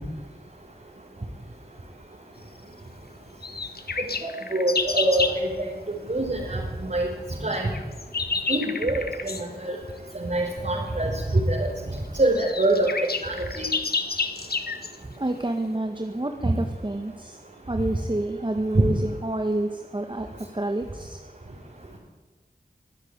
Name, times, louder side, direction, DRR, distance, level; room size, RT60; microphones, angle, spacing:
sound 1, 3.4-5.4 7.5-9.5 11.3-11.4 12.0-12.1 12.2-15.0, left 4 dB, 70° left, 1.7 m, -29 dB
voice 1, 4.5-5.5 6.1-7.1 7.4-7.7 8.5-9.8 10.2-11.7 12.2-13.6 16.4-16.5, right 1 dB, 50° right, -3 dB, 5.1 m, -24 dB
voice 2, 15.0-17.4 17.7-20.3 20.5-21.2, right 1 dB, 30° right, 4 dB, 1.8 m, -28 dB
24.0 x 13.0 x 9.8 m, 1.2 s
wide cardioid pair, 60°, 17 cm